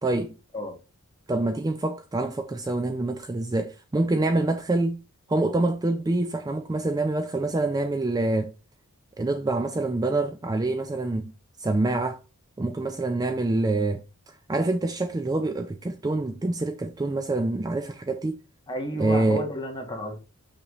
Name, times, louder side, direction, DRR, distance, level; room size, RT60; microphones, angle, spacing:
voice 1, 0.0-0.4 1.3-5.0 5.3-8.5 9.2-11.3 11.6-12.2 12.6-18.4 19.0-19.4, right 2 dB, 15° right, 0.3 m, -26 dB
voice 2, 18.7-20.2, left 1 dB, 20° left, 1.3 m, -31 dB
6.6 x 5.9 x 3.0 m
head